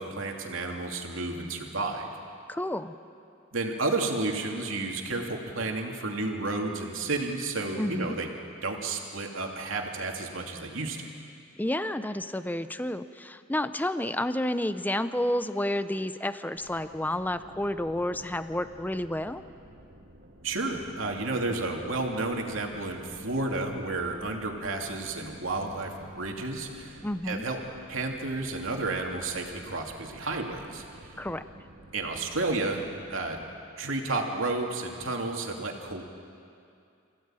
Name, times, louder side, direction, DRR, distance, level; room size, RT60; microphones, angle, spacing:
voice 1, 0.0-2.1 3.5-8.3 8.6-11.1 20.4-27.6 27.9-31.2 31.9-33.4 33.8-36.0, right 2 dB, 85° right, 1 dB, 2.7 m, -31 dB
voice 2, 2.5-2.9 7.8-8.2 11.6-19.4 27.0-27.4 31.2-31.4, left 1 dB, 10° left, 11 dB, 0.6 m, -30 dB
sound 1, 16.5-33.6, right 1 dB, 70° right, 2.2 m, -52 dB
26.5 x 16.0 x 9.0 m, 2.5 s
head